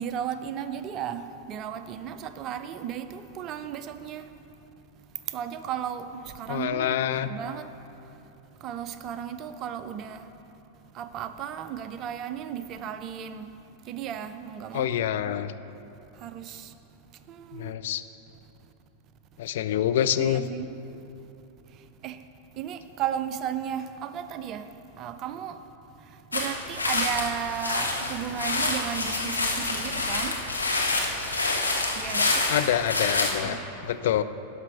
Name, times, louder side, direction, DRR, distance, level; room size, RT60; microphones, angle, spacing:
voice 1, 0.0-4.3 5.3-7.7 8.6-10.3 10.9-13.5 13.8-15.4 16.2-16.7 17.3-17.8 20.2-20.8 22.0-22.2 22.6-24.7 25.0-25.6 26.3-30.4 32.0-32.5 33.4-33.6, right 9 dB, 35° right, 0.5 m, -34 dB
voice 2, 6.5-7.3 14.7-15.5 17.6-18.0 19.4-20.4 32.5-34.2, left 11 dB, 55° left, 0.3 m, -26 dB
sound 1, 26.3-33.3, left 2 dB, 80° left, 1.1 m, -27 dB
11.5 x 5.6 x 5.9 m
figure-of-eight pair, 90°, 0 cm